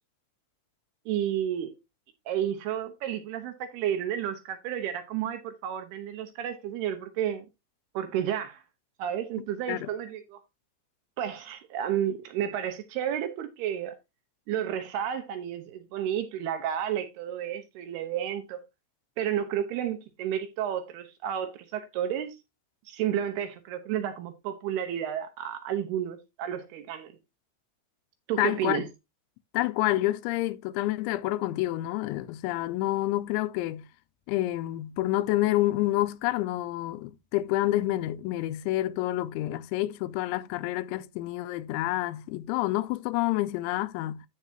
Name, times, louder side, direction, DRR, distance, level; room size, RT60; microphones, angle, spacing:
voice 1, 1.1-1.7 2.3-7.5 7.9-8.6 9.0-10.4 11.2-14.0 14.5-18.6 19.2-22.4 22.9-27.1 28.3-28.9, right 10 dB, 75° right, 2.6 m, -31 dB
voice 2, 28.4-28.9 29.5-33.9 34.3-44.2, left 16 dB, 85° left, 2.9 m, -28 dB
13.5 x 4.7 x 2.8 m
omnidirectional pair, 5.3 m